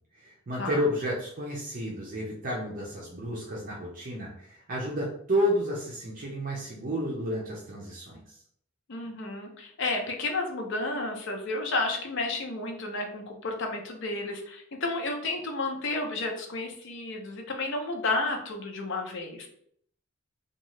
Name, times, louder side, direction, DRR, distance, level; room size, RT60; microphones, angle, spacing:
voice 1, 0.2-8.4, equal, 40° right, -4 dB, 0.6 m, -31 dB
voice 2, 8.9-19.5, left 2 dB, 60° left, 2 dB, 0.6 m, -32 dB
2.7 x 2.3 x 3.0 m, 0.65 s
head